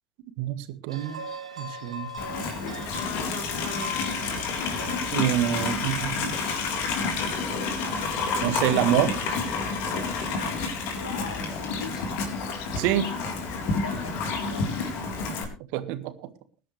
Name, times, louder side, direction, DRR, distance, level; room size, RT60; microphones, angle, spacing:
voice 1, 0.4-1.2 1.6-2.1 5.1-6.4 8.4-9.1 12.8-13.1 15.7-16.1, right 12 dB, 55° right, 10 dB, 1.8 m, -26 dB
sound 1, 0.9-6.1, equal, 80° right, 2.7 m, -39 dB
Livestock farm animals working animals, 2.2-15.4, left 4 dB, 55° left, 3.8 m, -29 dB
voice 2, 10.4-12.2 13.6-14.7, left 4 dB, 80° left, 4 dB, 3.8 m, -41 dB
21.0 x 11.5 x 3.3 m, 0.33 s
figure-of-eight pair, 70°, 3 cm